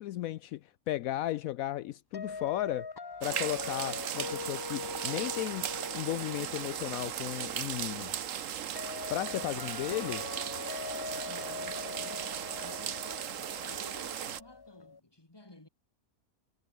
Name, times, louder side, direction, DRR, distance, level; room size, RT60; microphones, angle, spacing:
voice 1, 0.0-2.9 3.2-5.7 5.9-8.1 9.1-10.3, left 14 dB, 75° left, 1.0 m, -35 dB
sound 1, 2.1-15.0, left 4 dB, 40° left, 0.3 m, -43 dB
sound 2, 3.2-14.4, right 9 dB, 65° right, 1.3 m, -37 dB
voice 2, 11.2-15.7, left 2 dB, 15° left, 2.5 m, -54 dB
omnidirectional pair, 1.5 m